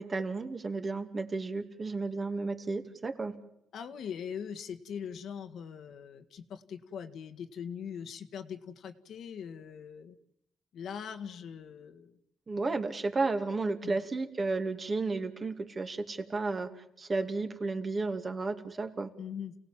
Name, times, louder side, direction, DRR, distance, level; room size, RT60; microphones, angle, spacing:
voice 1, 0.0-3.3 12.5-16.7 17.0-19.1, right 3 dB, 35° right, 5 dB, 2.5 m, -33 dB
voice 2, 3.7-10.2 10.7-12.1 13.8-14.0 19.2-19.6, left 7 dB, 70° left, 7 dB, 1.8 m, -41 dB
29.0 x 18.0 x 7.5 m, 0.79 s
cardioid pair, 90°, 0 cm